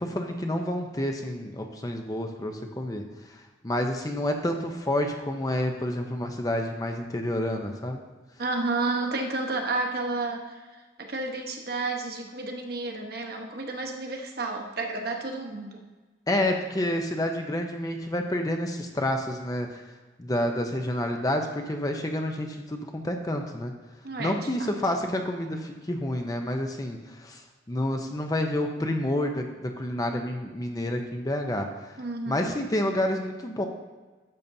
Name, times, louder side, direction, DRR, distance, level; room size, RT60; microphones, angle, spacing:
voice 1, 0.0-8.0 16.3-19.8 20.2-23.7 24.2-32.0 32.3-33.7, left 1 dB, 20° left, 4 dB, 0.6 m, -29 dB
voice 2, 8.4-10.5 11.0-15.8 24.0-24.7 32.0-32.5, right 3 dB, 55° right, 3 dB, 1.0 m, -31 dB
12.0 x 7.1 x 2.7 m, 1.3 s
head